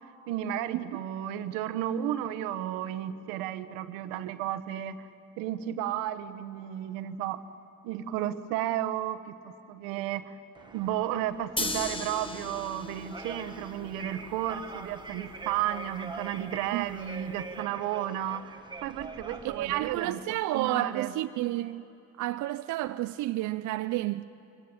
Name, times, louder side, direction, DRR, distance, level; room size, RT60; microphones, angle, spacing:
voice 1, 0.3-5.1 5.4-7.4 7.8-9.2 9.4-10.4 10.7-21.1, right 11 dB, 85° right, 1.2 m, -33 dB
sound 1, 10.6-20.0, right 4 dB, 15° right, 1.4 m, -44 dB
sound 2, 11.6-17.6, left 2 dB, 15° left, 1.4 m, -39 dB
voice 2, 19.4-21.9 22.2-24.2, right 16 dB, 60° right, 0.6 m, -31 dB
23.5 x 17.0 x 9.8 m
cardioid pair, 100°, 33 cm